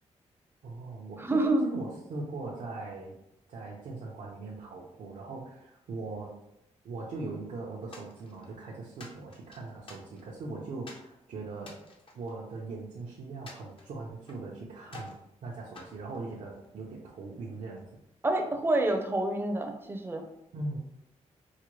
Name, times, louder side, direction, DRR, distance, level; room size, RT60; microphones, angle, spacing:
voice 1, 0.6-3.2 3.5-6.3 6.8-11.8 12.1-17.9 20.5-20.8, right 3 dB, 75° right, -5 dB, 0.7 m, -40 dB
voice 2, 1.2-1.6 18.2-20.2, right 2 dB, 20° right, 4 dB, 0.6 m, -27 dB
sound 1, 7.9-8.6 9.0-10.4 10.9-11.1 11.6-12.9 13.5-14.5 14.9-15.2 15.7-16.8, left 2 dB, 45° left, 0.8 m, -50 dB
4.8 x 2.2 x 3.1 m, 0.80 s
cardioid pair, 105°, 12 cm